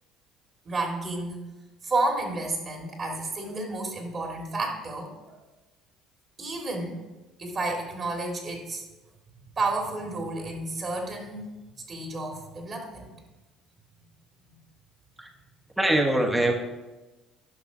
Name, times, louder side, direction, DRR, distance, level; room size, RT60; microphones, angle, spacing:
voice 1, 0.7-1.4 1.8-5.3 6.4-7.0 7.4-8.8 9.6-11.5 11.9-13.1, right 2 dB, 40° right, 2 dB, 2.0 m, -31 dB
voice 2, 15.8-16.5, right 1 dB, 10° right, 3 dB, 1.2 m, -22 dB
11.0 x 5.8 x 3.9 m, 1.1 s
supercardioid pair, 70°, 0 cm